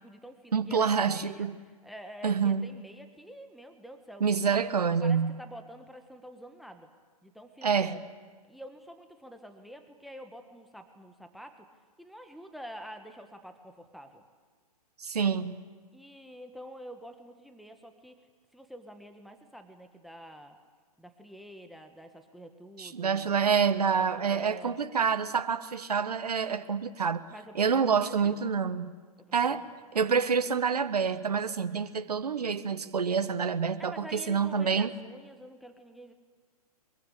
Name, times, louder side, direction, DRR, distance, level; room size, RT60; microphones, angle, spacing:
voice 1, 0.0-4.4 5.0-6.9 7.2-8.0 8.5-11.6 12.0-14.2 15.9-18.1 18.5-20.6 21.0-23.4 24.0-24.8 27.3-28.5 29.2-29.6 33.8-36.1, equal, ahead, 7 dB, 1.5 m, -47 dB
voice 2, 0.5-1.6 2.2-2.7 4.2-5.4 7.6-8.0 15.0-15.6 22.8-27.2 27.5-28.9 29.3-29.6 29.9-34.9, right 6 dB, 75° right, 10 dB, 1.4 m, -27 dB
23.5 x 22.5 x 8.5 m, 1.5 s
figure-of-eight pair, 120°, 20 cm